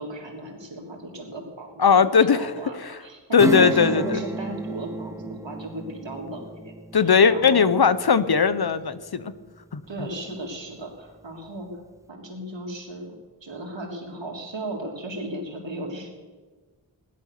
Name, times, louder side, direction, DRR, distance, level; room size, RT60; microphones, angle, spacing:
voice 1, 0.0-6.7 7.0-7.8 9.9-11.7 12.1-16.1, right 1 dB, 80° right, 0 dB, 3.3 m, -36 dB
voice 2, 1.8-2.5 2.8-3.0 3.3-4.2 6.9-9.3 9.7-9.8, left 6 dB, 60° left, 14 dB, 1.0 m, -19 dB
Acoustic guitar / Strum, 3.4-9.6 10.0-10.1, right 2 dB, 5° right, 0.7 m, -32 dB
16.5 x 11.5 x 6.7 m, 1.4 s
cardioid pair, 50°, 44 cm